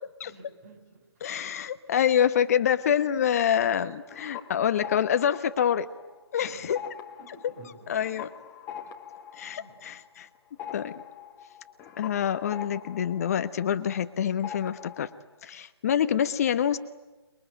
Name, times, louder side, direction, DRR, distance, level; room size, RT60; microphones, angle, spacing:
voice 1, 0.2-1.1 6.5-6.6 7.2-8.0 8.8-8.9 9.6-9.8, right 3 dB, 35° right, 5 dB, 7.1 m, -51 dB
voice 2, 1.2-5.9 6.3-6.8 7.3-7.4 7.9-8.3 9.3-10.3 10.7-10.9 12.0-15.1 15.4-16.8, left 9 dB, 35° left, 11 dB, 1.1 m, -26 dB
sound 1, 3.9-6.3 6.6-14.1 14.4-15.2, left 9 dB, 15° left, 1.7 m, -43 dB
29.0 x 22.5 x 9.2 m, 1.2 s
figure-of-eight pair, 145°, 14 cm